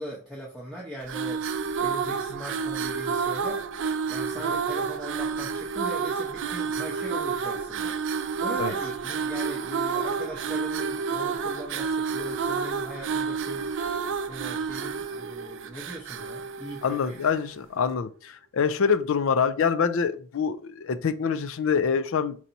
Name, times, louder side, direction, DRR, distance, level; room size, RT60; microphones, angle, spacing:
voice 1, 0.0-3.6 4.1-8.0 8.4-13.9 14.3-17.2, equal, ahead, -5 dB, 0.9 m, -40 dB
sound 1, 1.0-17.5, right 5 dB, 60° right, 0.4 m, -30 dB
voice 2, 16.8-22.4, left 6 dB, 65° left, 12 dB, 0.5 m, -25 dB
4.7 x 2.8 x 4.0 m, 0.40 s
head